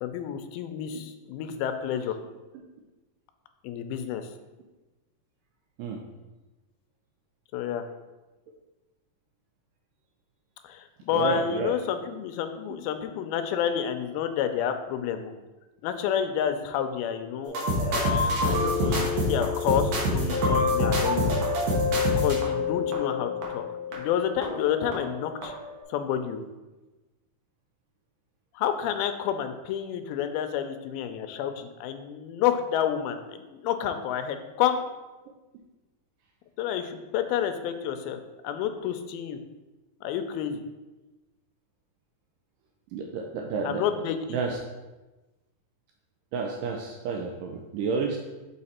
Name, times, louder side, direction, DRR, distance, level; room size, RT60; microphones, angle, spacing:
voice 1, 0.0-2.2 3.6-4.2 7.5-7.8 10.6-15.3 15.8-21.5 22.2-23.6 23.9-25.5 25.9-26.4 28.6-34.8 36.6-38.2 38.4-39.4 40.0-40.6 43.6-44.4, left 9 dB, 85° left, 8 dB, 2.4 m, -29 dB
voice 2, 11.1-11.8 42.9-43.8 44.3-44.6 46.3-48.2, right 4 dB, 80° right, 1 dB, 2.0 m, -30 dB
sound 1, 17.5-25.2 25.4-25.8, left 2 dB, 60° right, 2.0 m, -26 dB
6.6 x 4.7 x 4.2 m, 1.1 s
omnidirectional pair, 4.2 m